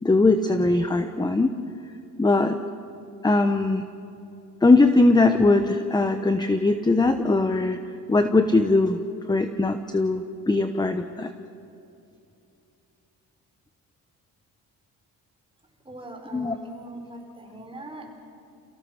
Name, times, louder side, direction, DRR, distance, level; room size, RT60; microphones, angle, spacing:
voice 1, 0.0-1.5 2.2-2.6 3.2-3.8 4.6-7.8 8.1-9.0 9.3-11.3 16.3-16.6, left 2 dB, 10° left, 8 dB, 0.9 m, -20 dB
voice 2, 15.9-18.1, right 1 dB, 15° right, 2 dB, 4.4 m, -41 dB
29.0 x 16.0 x 6.4 m, 2.7 s
cardioid pair, 100°, 36 cm